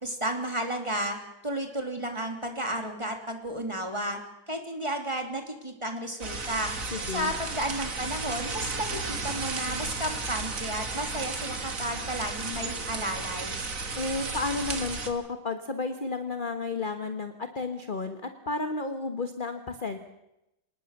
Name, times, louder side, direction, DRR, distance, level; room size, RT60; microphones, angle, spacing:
voice 1, 0.0-1.2 1.4-4.2 4.5-6.7 7.1-13.6, right 1 dB, 15° right, 4 dB, 3.2 m, -33 dB
sound 1, 6.2-15.1, right 3 dB, 45° right, 2.5 m, -34 dB
voice 2, 6.9-7.3 14.0-20.0, left 3 dB, 30° left, 7 dB, 1.3 m, -32 dB
26.0 x 19.5 x 6.7 m, 0.89 s
omnidirectional pair, 2.1 m